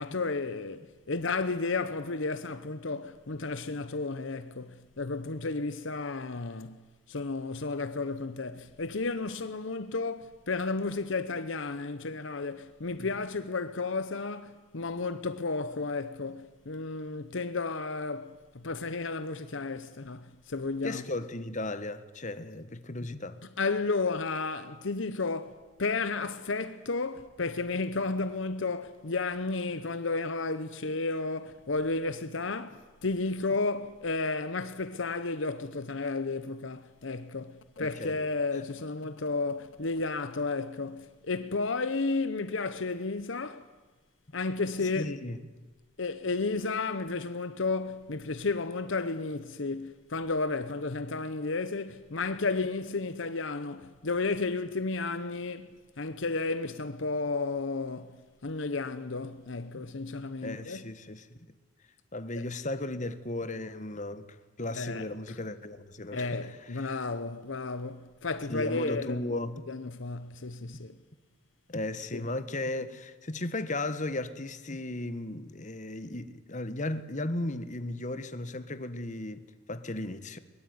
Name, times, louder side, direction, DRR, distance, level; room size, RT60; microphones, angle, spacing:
voice 1, 0.0-21.0 23.6-43.7 44.3-45.2 46.0-60.8 62.3-62.4 64.8-65.4 66.1-69.2 69.7-71.0 72.1-72.2, left 3 dB, 65° left, 0.9 m, -33 dB
voice 2, 20.8-23.4 37.8-38.2 39.0-39.1 44.8-45.4 60.4-61.4 62.1-64.3 64.6-66.9 68.5-69.6 71.7-80.4, left 2 dB, 40° left, 1.4 m, -36 dB
22.0 x 22.0 x 9.6 m
head